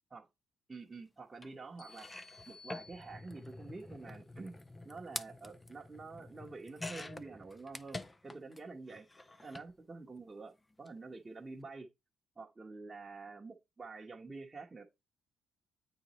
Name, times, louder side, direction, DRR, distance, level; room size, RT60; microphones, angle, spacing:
voice 1, 0.7-4.6 4.8-9.1 9.4-11.9 12.4-14.8, right 3 dB, 25° right, 1.0 m, -48 dB
sound 1, 1.4-1.5 1.9-8.6 8.9-9.7 10.7-10.9 11.1-11.2, left 2 dB, 20° left, 0.5 m, -47 dB
sound 2, 1.8-3.7, left 4 dB, 70° left, 1.4 m, -57 dB
8.6 x 4.0 x 3.1 m
cardioid pair, 90°, 0 cm